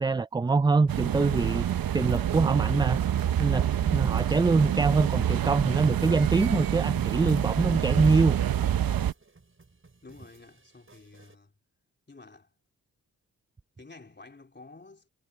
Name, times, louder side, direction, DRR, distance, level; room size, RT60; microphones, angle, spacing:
voice 1, 0.0-1.7 1.9-3.0 3.4-8.4, right 3 dB, 15° right, 0.3 m, -24 dB
sound 1, 0.9-9.1, right 10 dB, 80° right, 0.9 m, -27 dB
sound 2, 3.4-11.4, right 3 dB, 35° right, 6.6 m, -58 dB
voice 2, 10.0-11.5 12.1-12.5 13.8-15.1, left 3 dB, 30° left, 3.6 m, -50 dB
cardioid pair, 65°, 35 cm